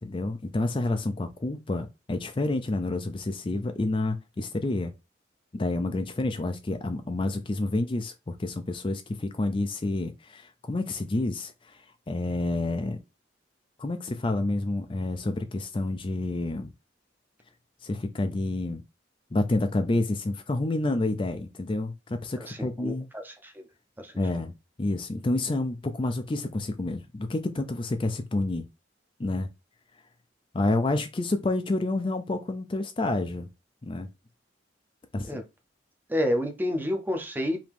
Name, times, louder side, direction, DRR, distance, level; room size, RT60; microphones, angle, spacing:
voice 1, 0.0-4.9 5.5-13.0 13.8-16.7 17.8-18.8 19.3-23.1 24.2-24.5 24.8-28.6 29.2-29.5 30.5-33.5 33.8-34.1 35.1-35.4, left 2 dB, 30° left, 0.4 m, -29 dB
voice 2, 22.4-23.6 24.0-24.1 35.2-35.4 36.1-37.6, left 1 dB, 10° right, 0.7 m, -29 dB
4.8 x 2.8 x 3.5 m
head